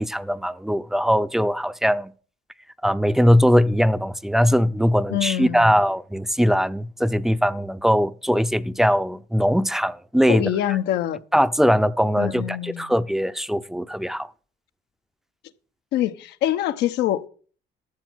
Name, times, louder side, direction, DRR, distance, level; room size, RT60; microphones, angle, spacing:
voice 1, 0.0-2.1 2.8-10.5 11.3-14.3, equal, ahead, 0.6 m, -20 dB
voice 2, 5.1-5.8 10.3-11.2 12.2-13.0 15.9-17.3, left 12 dB, 80° left, 1.0 m, -25 dB
13.5 x 7.1 x 6.3 m
cardioid pair, 110°, 17 cm